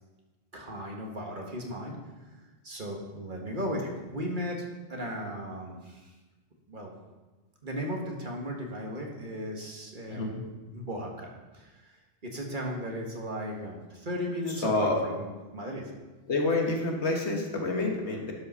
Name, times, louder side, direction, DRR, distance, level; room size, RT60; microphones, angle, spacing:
voice 1, 0.5-2.0 2.6-4.6 4.9-6.1 6.7-6.9 7.6-10.4 10.7-12.0 12.2-15.9, equal, 45° right, 0 dB, 1.7 m, -36 dB
voice 2, 14.6-15.0 16.3-18.3, left 2 dB, 75° left, 1 dB, 1.8 m, -28 dB
12.0 x 5.5 x 5.6 m, 1.2 s
omnidirectional pair, 1.2 m